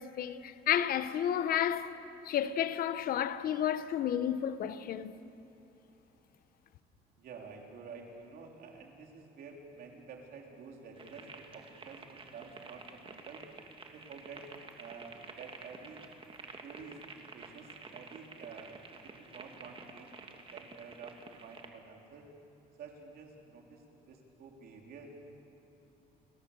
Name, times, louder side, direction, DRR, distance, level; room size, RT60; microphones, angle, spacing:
voice 1, 0.0-1.9 2.2-5.1, left 10 dB, 60° left, 0.9 m, -31 dB
voice 2, 7.2-13.4 13.9-14.4 14.7-16.0 16.6-18.7 19.2-22.3 22.8-25.1, right 5 dB, 65° right, 3.5 m, -50 dB
sound 1, 11.0-21.7, right 4 dB, 30° right, 1.9 m, -50 dB
29.5 x 14.0 x 6.8 m
cardioid pair, 110°, 17 cm